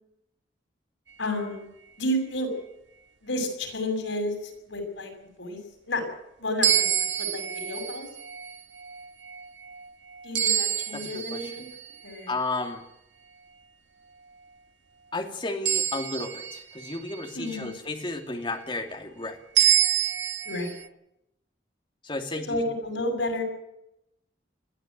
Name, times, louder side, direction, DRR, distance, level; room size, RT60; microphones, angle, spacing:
voice 1, 1.2-1.7 2.0-2.5 3.2-5.6 5.9-6.0 6.4-8.1 10.2-11.6 12.0-12.3 17.3-17.7 20.4-20.8 22.5-23.4, left 1 dB, 90° left, 5 dB, 6.8 m, -31 dB
sound 1, 6.6-12.1 15.7-17.7 19.6-20.9, right 11 dB, 80° right, 1.5 m, -27 dB
voice 2, 10.9-11.5 12.3-12.8 15.1-19.4 22.0-22.6, left 2 dB, 25° left, 4 dB, 2.8 m, -33 dB
21.5 x 14.5 x 9.4 m, 0.83 s
head